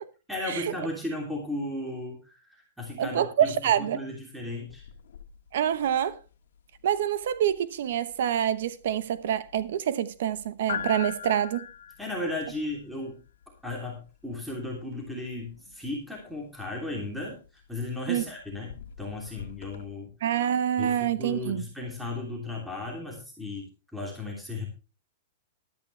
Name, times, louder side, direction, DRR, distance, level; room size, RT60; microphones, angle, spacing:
voice 1, 0.3-4.9 12.0-13.2 13.6-20.1 20.8-23.7 23.9-24.6, left 2 dB, ahead, 3.0 m, -35 dB
voice 2, 3.0-4.0 5.5-6.2 6.8-11.7 18.1-18.2 20.2-21.7, right 10 dB, 65° right, 1.0 m, -26 dB
sound 1, 4.7-19.8, left 8 dB, 80° left, 1.6 m, -44 dB
13.5 x 12.5 x 3.3 m
supercardioid pair, 165°, 0 cm